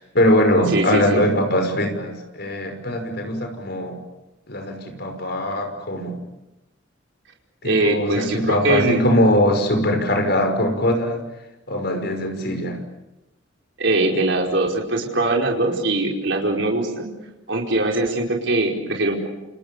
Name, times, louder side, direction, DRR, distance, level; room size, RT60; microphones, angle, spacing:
voice 1, 0.0-4.0 4.5-6.2 7.6-11.2 11.7-12.8, left 1 dB, 55° left, 6 dB, 5.5 m, -21 dB
voice 2, 0.7-1.2 7.6-9.0 13.8-17.1 17.5-19.3, right 2 dB, 65° right, 0 dB, 4.9 m, -21 dB
29.5 x 28.5 x 7.0 m, 0.96 s
head